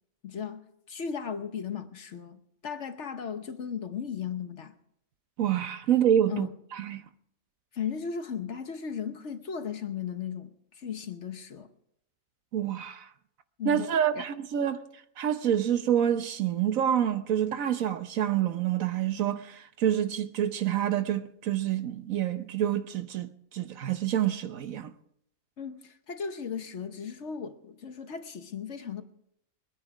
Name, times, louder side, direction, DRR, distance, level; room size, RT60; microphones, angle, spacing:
voice 1, 0.2-0.6 0.9-4.7 6.3-6.6 7.7-11.7 13.6-14.3 25.6-29.0, left 7 dB, 55° left, 1.2 m, -36 dB
voice 2, 5.4-6.5 6.7-7.0 12.5-13.1 13.7-14.8 15.2-24.9, right 10 dB, 65° right, 1.2 m, -27 dB
21.5 x 10.0 x 4.9 m
omnidirectional pair, 1.6 m